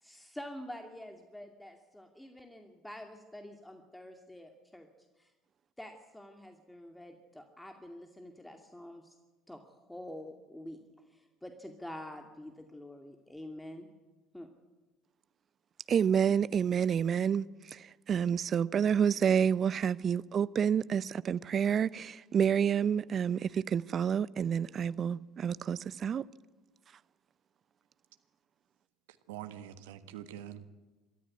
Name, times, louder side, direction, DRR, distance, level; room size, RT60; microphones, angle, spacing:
voice 1, 0.0-4.9 5.2-5.3 5.8-9.1 9.5-9.6 9.9-10.8 11.1-13.9 14.3-14.5, left 1 dB, 5° left, 2.4 m, -47 dB
voice 2, 15.9-26.2, right 8 dB, 40° right, 0.7 m, -29 dB
voice 3, 29.1-30.7, right 11 dB, 75° right, 1.4 m, -45 dB
23.0 x 13.5 x 9.5 m
hypercardioid pair, 65°, 0 cm